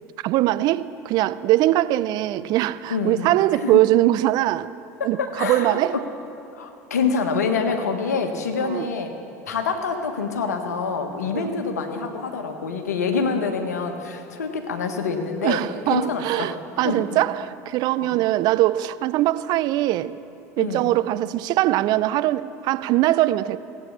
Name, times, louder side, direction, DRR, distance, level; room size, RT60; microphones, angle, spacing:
voice 1, 0.2-4.7 5.0-6.0 8.6-8.9 11.3-11.5 15.4-20.2 20.6-23.6, right 15 dB, 55° right, 0.4 m, -22 dB
voice 2, 2.9-3.3 3.6-3.8 5.0-6.0 6.5-9.1 9.4-15.6 15.9-16.6 16.8-17.1 18.0-18.1 20.6-20.9, left 5 dB, 80° left, 1.3 m, -26 dB
17.0 x 8.6 x 7.2 m
hypercardioid pair, 70°, 9 cm